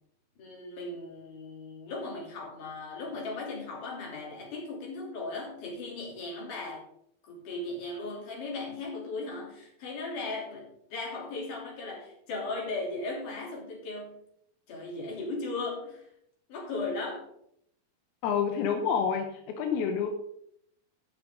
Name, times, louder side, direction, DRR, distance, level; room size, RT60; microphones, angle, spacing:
voice 1, 0.4-6.8 7.3-14.1 14.7-16.1 16.5-17.3, left 3 dB, 60° left, -3 dB, 4.5 m, -37 dB
voice 2, 18.2-20.1, left 7 dB, 85° left, 4 dB, 2.9 m, -28 dB
18.0 x 6.2 x 3.8 m, 0.71 s
omnidirectional pair, 4.3 m